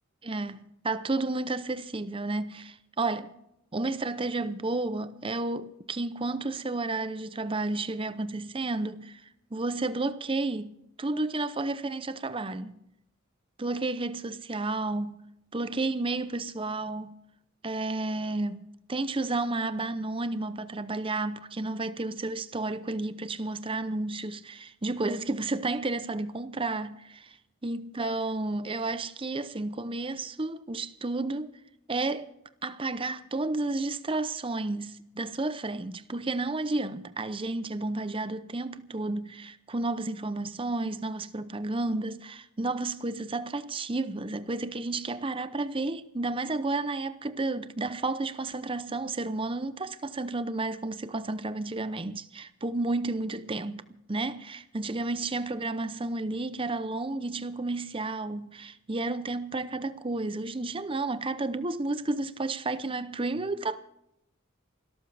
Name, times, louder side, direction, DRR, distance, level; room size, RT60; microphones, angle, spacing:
voice 1, 0.2-0.6 0.8-3.3 3.7-9.2 9.5-10.7 11.0-12.8 13.6-15.3 15.5-17.1 17.6-27.4 27.6-31.5 31.9-32.3 32.6-63.8, right 2 dB, 25° right, 0.7 m, -32 dB
28.0 x 13.5 x 3.4 m
head